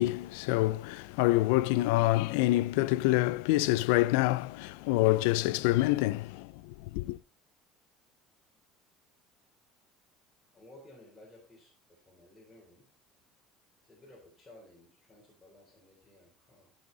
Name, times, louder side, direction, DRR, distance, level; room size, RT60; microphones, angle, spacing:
voice 1, 0.0-7.2, left 18 dB, 90° left, 0.4 m, -27 dB
voice 2, 10.5-12.9 13.8-16.7, left 1 dB, 10° left, 3.5 m, -56 dB
14.0 x 5.7 x 3.9 m
cardioid pair, 130°, 0 cm